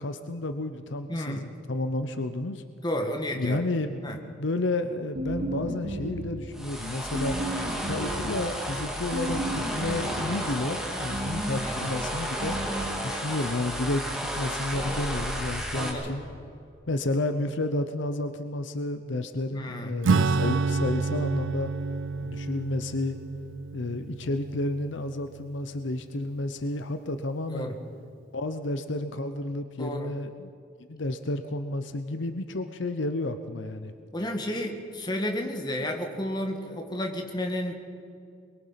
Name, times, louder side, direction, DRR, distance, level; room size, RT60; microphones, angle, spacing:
voice 1, 0.0-2.6 3.3-7.4 7.9-12.6 13.0-16.2 16.9-21.7 22.2-23.2 23.7-27.7 28.3-30.5 30.9-33.9, left 2 dB, 70° left, 9 dB, 0.8 m, -31 dB
voice 2, 1.1-1.4 2.8-3.6 4.0-4.2 11.5-11.9 15.7-16.1 19.5-19.9 27.5-27.8 29.8-30.1 34.1-37.7, left 1 dB, 25° left, 3 dB, 1.9 m, -32 dB
sound 1, 5.1-6.3 7.1-8.2 9.1-10.2 11.1-11.7 12.4-13.0, right 1 dB, 60° right, 3.7 m, -33 dB
sound 2, 6.5-15.9, equal, 5° right, 3.0 m, -33 dB
Acoustic guitar / Strum, 20.0-26.0, right 4 dB, 85° right, 0.5 m, -29 dB
23.5 x 22.5 x 5.8 m, 2.5 s
head